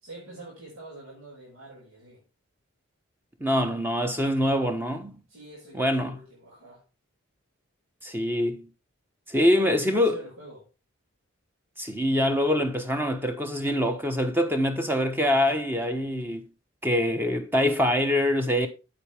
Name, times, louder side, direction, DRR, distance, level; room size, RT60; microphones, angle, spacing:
voice 1, 0.0-2.2 5.3-6.8 9.3-10.7, right 1 dB, 85° right, 5.5 m, -44 dB
voice 2, 3.4-5.2 5.7-6.2 8.0-8.7 9.3-10.2 11.8-16.5 16.8-18.7, left 1 dB, 10° right, 1.1 m, -24 dB
8.9 x 8.1 x 3.4 m
head